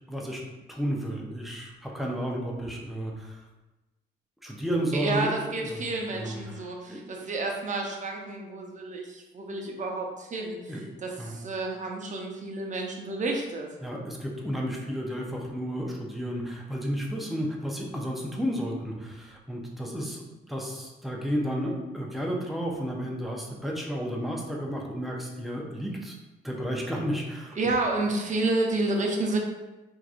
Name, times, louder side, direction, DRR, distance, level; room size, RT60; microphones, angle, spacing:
voice 1, 0.1-0.4 0.7-3.4 4.4-5.8 6.1-7.0 10.7-10.8 11.2-11.3 13.8-26.1 26.4-27.5, equal, ahead, -2 dB, 0.7 m, -32 dB
voice 2, 4.9-13.7 27.6-29.4, right 2 dB, 40° right, 1 dB, 0.7 m, -30 dB
3.6 x 2.9 x 2.5 m, 1.1 s
cardioid pair, 90°, 20 cm